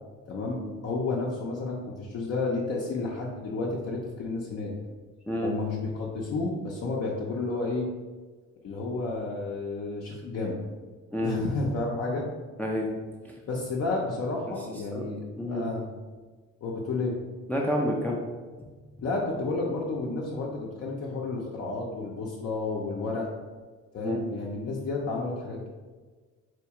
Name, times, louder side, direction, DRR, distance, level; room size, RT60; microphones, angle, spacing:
voice 1, 0.3-4.7 5.4-7.9 8.6-10.6 11.2-12.3 13.5-15.2 15.5-15.9 16.6-17.1 19.0-23.3 23.9-25.7, left 3 dB, 55° left, -3 dB, 0.6 m, -31 dB
voice 2, 11.1-11.4 12.6-12.9 13.2-13.3 14.9-15.7 17.5-18.2 24.0-24.3, equal, 5° left, -1 dB, 0.4 m, -29 dB
4.2 x 2.3 x 2.8 m, 1.4 s
cardioid pair, 90°, 30 cm